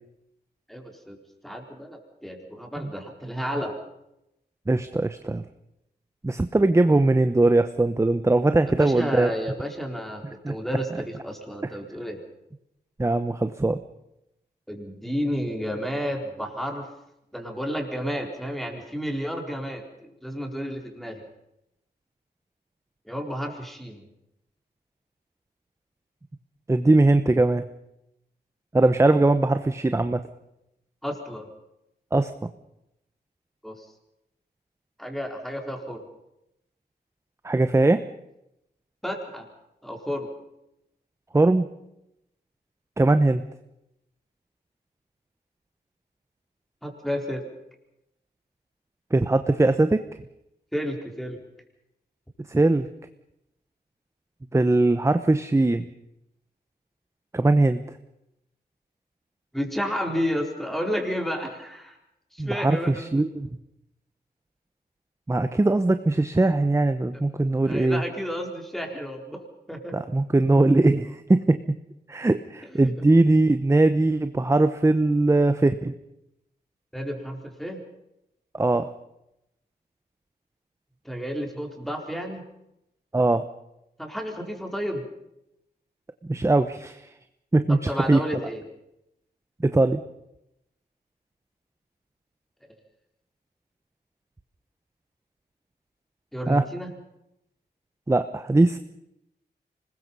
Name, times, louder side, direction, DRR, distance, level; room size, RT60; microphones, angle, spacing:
voice 1, 0.7-1.2 1.4-3.8 8.8-12.2 14.7-16.9 17.3-21.2 23.1-24.0 31.0-31.5 33.6-33.9 35.0-36.0 39.0-39.5 39.8-40.3 46.8-47.4 50.7-51.4 59.5-61.9 62.3-63.3 67.6-69.4 69.7-70.0 72.8-72.9 76.9-77.8 81.0-82.4 84.0-85.0 87.7-88.6 96.3-96.9, equal, ahead, 2 dB, 4.3 m, -31 dB
voice 2, 4.7-5.4 6.2-9.3 10.4-10.5 13.0-13.8 26.7-27.6 28.7-30.2 32.1-32.3 37.4-38.0 41.3-41.7 43.0-43.4 49.1-50.1 52.5-52.9 54.5-55.9 57.3-57.8 62.4-63.5 65.3-68.0 69.9-71.6 72.1-75.9 78.5-78.9 83.1-83.4 86.2-87.1 87.5-88.2 89.6-90.0 96.5-96.7 98.1-98.8, right 2 dB, 15° right, 10 dB, 0.9 m, -20 dB
26.0 x 20.5 x 5.5 m, 0.84 s
wide cardioid pair, 95°, 18 cm